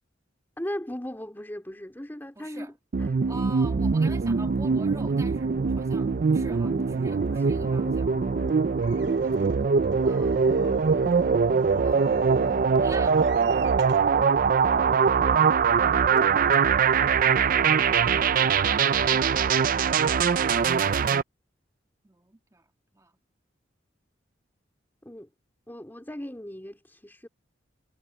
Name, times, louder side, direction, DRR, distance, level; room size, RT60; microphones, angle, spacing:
voice 1, 0.6-3.3 7.1-8.0 8.4-8.7 14.6-16.5 25.0-25.3 25.7-27.3, left 1 dB, 10° left, 3.3 m, -39 dB
voice 2, 2.4-2.7 3.3-8.1 9.2-9.6 10.0-10.5 11.8-12.3 12.8-13.3 17.1-18.1 22.0-22.6 22.9-23.1, right 2 dB, 15° right, 1.7 m, -46 dB
sound 1, 2.9-21.2, right 6 dB, 45° right, 0.4 m, -22 dB
sound 2, 4.4-13.1, left 2 dB, 75° left, 4.3 m, -46 dB
sound 3, 8.8-14.2 14.9-15.0 15.2-15.3, right 7 dB, 70° right, 5.6 m, -51 dB
head